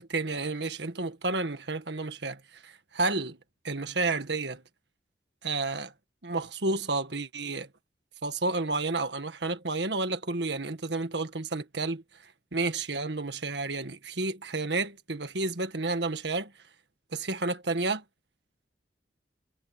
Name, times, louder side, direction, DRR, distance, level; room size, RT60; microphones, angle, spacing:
voice 1, 0.0-3.4 3.6-4.6 5.4-5.9 6.2-7.7 8.2-16.5 17.1-18.0, right 3 dB, 75° right, 1.7 m, -31 dB
head